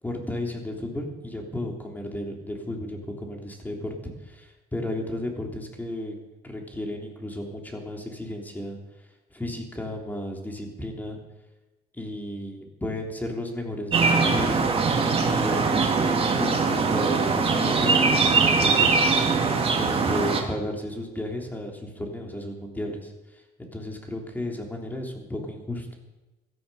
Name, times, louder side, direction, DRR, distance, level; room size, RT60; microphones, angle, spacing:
voice 1, 0.0-6.1 6.4-11.2 11.9-14.6 15.2-19.2 19.8-26.0, left 1 dB, 10° left, 1 dB, 3.4 m, -34 dB
sound 1, 13.9-20.4, right 4 dB, 35° right, 2.4 m, -22 dB
17.5 x 13.0 x 5.6 m, 1.1 s
cardioid pair, 110°, 17 cm